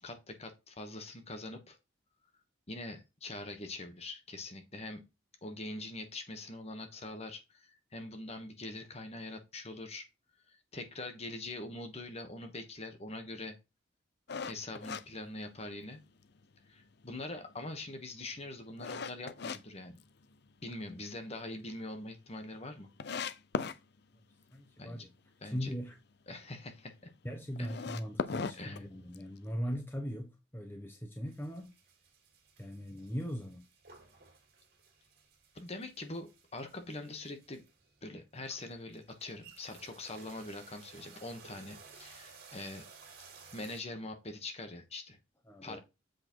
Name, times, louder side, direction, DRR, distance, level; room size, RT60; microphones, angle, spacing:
voice 1, 0.0-1.8 2.7-5.0 5.4-10.1 10.5-13.5 14.5-16.0 16.7-20.0 20.6-22.9 24.8-25.1 25.4-25.7 26.3-27.1 27.6-27.7 28.5-28.8 35.5-37.6 38.0-42.9 43.5-45.2 45.6-45.8, left 2 dB, 30° left, 1.4 m, -43 dB
sound 1, 14.3-16.0 16.4-16.5 17.1-19.6 20.0-20.7 21.1-21.2 21.5-21.6 21.8-21.9 22.5-22.6 23.0-23.8 27.5-29.4, left 5 dB, 55° left, 0.6 m, -38 dB
voice 2, 24.5-25.1 25.4-25.9 27.2-31.7 32.6-33.6 45.5-45.8, equal, 10° left, 1.0 m, -39 dB
sound 2, 31.3-43.8, right 5 dB, 50° right, 2.3 m, -57 dB
7.8 x 4.2 x 4.5 m
head